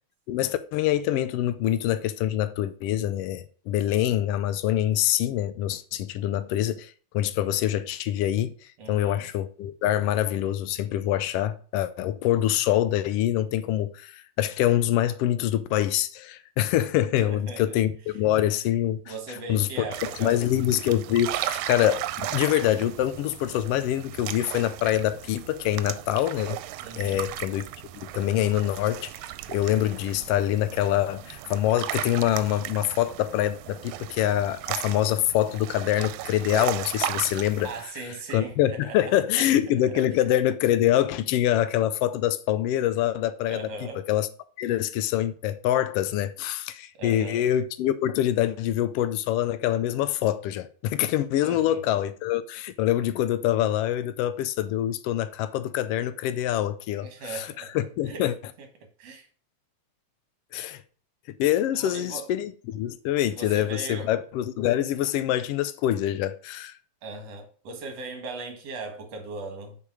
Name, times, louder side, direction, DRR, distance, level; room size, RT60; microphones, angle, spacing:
voice 1, 0.3-19.7 20.0-26.6 26.9-27.6 27.9-29.2 29.5-44.3 44.6-58.4 60.5-60.8 61.4-66.8, left 12 dB, 85° left, 1.3 m, -25 dB
voice 2, 8.8-9.2 17.2-17.8 19.1-20.4 26.8-27.3 37.6-39.0 39.3-39.5 39.9-40.0 43.5-44.0 47.0-47.4 51.4-51.8 56.9-57.7 58.1-58.3 58.6-58.7 59.0-59.3 61.7-62.3 63.3-64.1 67.0-69.8, right 3 dB, 60° right, 2.5 m, -38 dB
sound 1, 19.9-37.8, right 13 dB, 85° right, 2.0 m, -36 dB
7.1 x 5.2 x 4.8 m
omnidirectional pair, 3.3 m